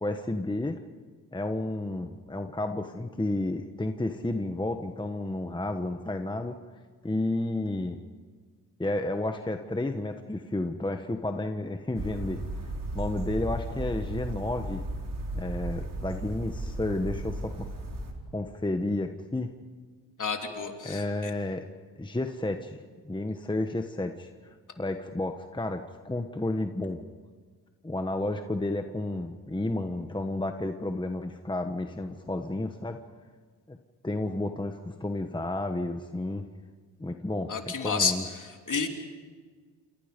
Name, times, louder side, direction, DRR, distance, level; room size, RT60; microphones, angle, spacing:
voice 1, 0.0-0.8 1.3-6.6 7.0-8.0 8.8-12.4 12.9-14.8 15.3-17.7 18.3-19.5 20.8-21.6 22.0-22.8 23.0-24.3 24.8-27.0 27.8-33.0 33.7-33.8 34.0-36.4 37.0-38.3, left 2 dB, 10° left, 6 dB, 1.3 m, -31 dB
sound 1, 11.9-18.1, right 1 dB, 50° right, 4.7 m, -35 dB
voice 2, 20.2-21.3 37.5-38.1 38.4-38.9, left 5 dB, 45° left, 4 dB, 3.5 m, -30 dB
28.0 x 28.0 x 5.3 m, 1.6 s
cardioid pair, 90°, 42 cm